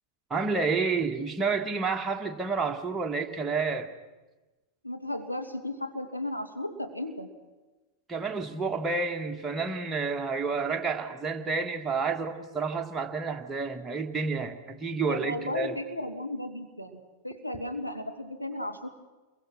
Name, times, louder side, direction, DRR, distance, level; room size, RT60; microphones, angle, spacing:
voice 1, 0.3-3.9 8.1-15.8, right 4 dB, 15° right, 1.8 m, -30 dB
voice 2, 4.8-7.3 15.1-18.9, left 1 dB, 90° left, 2.1 m, -35 dB
28.0 x 22.5 x 6.1 m
figure-of-eight pair, 90°, 0 cm